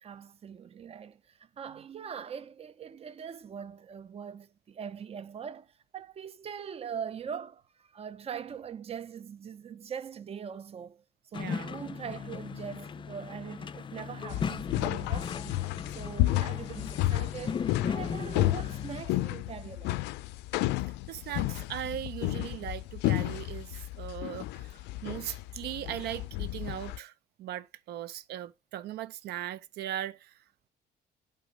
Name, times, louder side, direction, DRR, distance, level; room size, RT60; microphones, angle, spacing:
voice 1, 0.0-11.0 11.3-15.6 15.9-20.0, right 7 dB, 35° right, 0.7 m, -42 dB
sound 1, 11.3-19.0, left 6 dB, 30° left, 0.4 m, -37 dB
voice 2, 11.3-11.7 21.1-27.1 27.4-30.3, right 12 dB, 70° right, 0.6 m, -39 dB
sound 2, 14.3-27.0, left 16 dB, 85° left, 0.4 m, -32 dB
8.0 x 3.9 x 5.1 m
cardioid pair, 110°, 17 cm